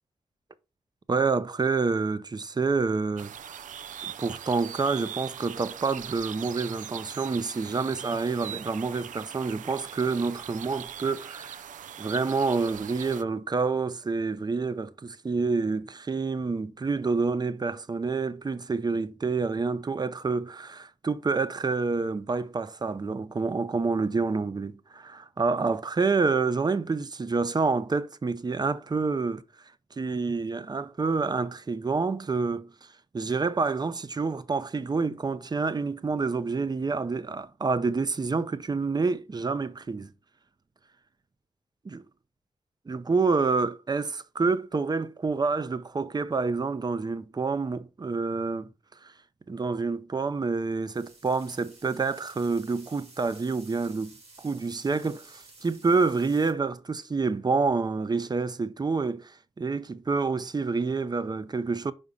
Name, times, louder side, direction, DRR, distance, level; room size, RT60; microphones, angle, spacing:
voice 1, 1.1-3.3 4.0-11.6 12.0-29.4 30.0-32.7 33.1-40.1 41.9-42.0 42.9-48.7 49.0-49.1 49.5-61.9, right 4 dB, 30° right, 0.6 m, -28 dB
sound 1, 3.2-13.2, right 9 dB, 85° right, 0.4 m, -41 dB
sound 2, 50.9-56.5, right 3 dB, 50° right, 2.9 m, -53 dB
5.4 x 4.8 x 5.4 m
cardioid pair, 75°, 13 cm